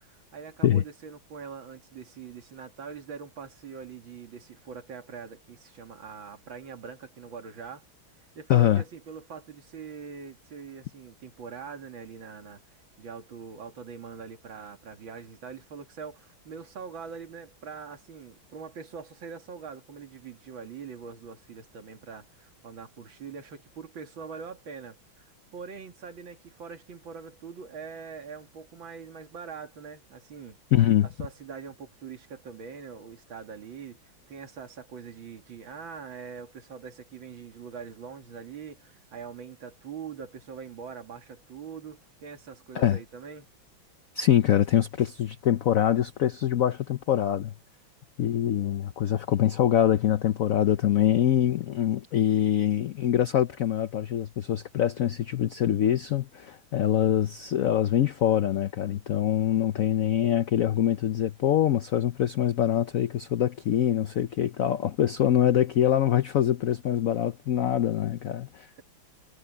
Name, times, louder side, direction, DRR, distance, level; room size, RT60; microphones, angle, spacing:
voice 1, 0.0-7.8 8.3-25.2 25.5-30.6 31.2-43.5, right 6 dB, 80° right, 2.9 m, -43 dB
voice 2, 8.5-8.8 30.7-31.1 42.7-43.0 44.2-47.5 48.2-68.7, left 11 dB, 65° left, 0.8 m, -24 dB
omnidirectional pair, 2.1 m